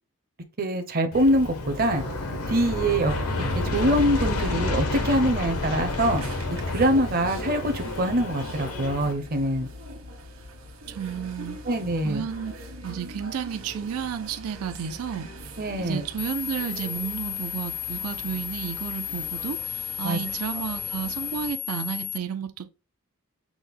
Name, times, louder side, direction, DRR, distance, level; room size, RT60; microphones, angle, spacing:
voice 1, 0.6-2.0 2.5-3.1 3.6-6.2 6.7-9.7 11.7-12.2 15.6-16.0 20.0-20.2, right 1 dB, 45° right, 0.6 m, -24 dB
Aircraft, 1.1-9.1, left 2 dB, 85° left, 0.9 m, -30 dB
sound 1, 1.7-21.5, right 1 dB, 70° right, 1.3 m, -42 dB
voice 2, 10.9-11.6 12.0-12.5 12.8-15.3 15.8-22.7, right 7 dB, 85° right, 0.4 m, -32 dB
sound 2, 16.2-22.2, left 12 dB, 35° left, 0.4 m, -33 dB
6.1 x 2.1 x 3.5 m
head